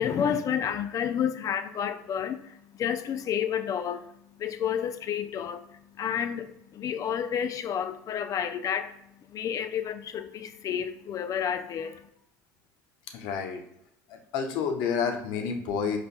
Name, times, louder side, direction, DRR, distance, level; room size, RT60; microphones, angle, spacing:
voice 1, 0.0-12.1, left 8 dB, 45° left, 0.5 m, -30 dB
voice 2, 13.1-13.6 14.1-16.0, left 6 dB, 65° left, 0.8 m, -29 dB
5.1 x 4.1 x 2.2 m
hypercardioid pair, 80°, 8 cm